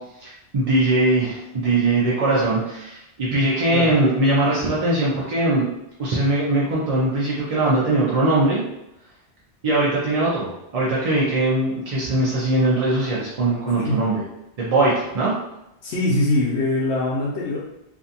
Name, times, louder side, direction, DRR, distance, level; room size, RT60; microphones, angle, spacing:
voice 1, 0.2-5.6 6.0-8.6 9.6-14.2 14.6-15.3, right 2 dB, 45° right, -7 dB, 0.5 m, -21 dB
voice 2, 15.8-17.6, left 2 dB, 80° left, -6 dB, 0.9 m, -22 dB
2.5 x 2.3 x 2.6 m, 0.88 s
omnidirectional pair, 1.1 m